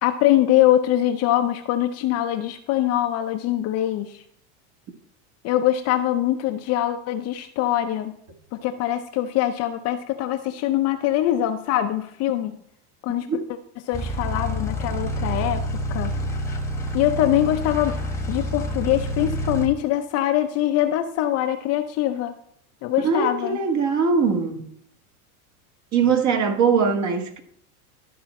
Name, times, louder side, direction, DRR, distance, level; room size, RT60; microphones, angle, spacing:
voice 1, 0.0-4.1 5.4-8.1 8.6-12.6 13.0-13.3 13.9-15.6 15.9-16.1 16.9-18.0 18.3-22.3 22.8-23.6, left 12 dB, 35° left, 0.6 m, -23 dB
sound 1, 13.9-19.7, equal, 5° left, 1.2 m, -28 dB
voice 2, 23.0-24.7 25.9-27.4, right 5 dB, 40° right, 1.5 m, -21 dB
12.5 x 4.7 x 4.2 m
supercardioid pair, 125°, 46 cm